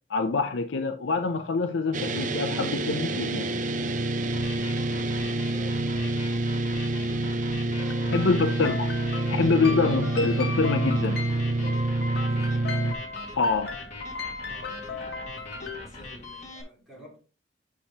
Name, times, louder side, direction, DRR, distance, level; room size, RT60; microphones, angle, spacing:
voice 1, 0.1-3.5 8.1-8.9 9.3-11.2 13.4-13.8, left 4 dB, 75° left, 0.6 m, -25 dB
sound 1, 1.9-12.9, right 2 dB, 40° right, 0.6 m, -27 dB
sound 2, 4.2-16.6, left 2 dB, 40° left, 2.0 m, -43 dB
voice 2, 4.8-8.7 12.3-13.1 14.4-17.2, right 1 dB, ahead, 4.0 m, -50 dB
sound 3, 7.8-15.8, left 4 dB, 60° left, 1.5 m, -37 dB
8.4 x 5.8 x 2.9 m
head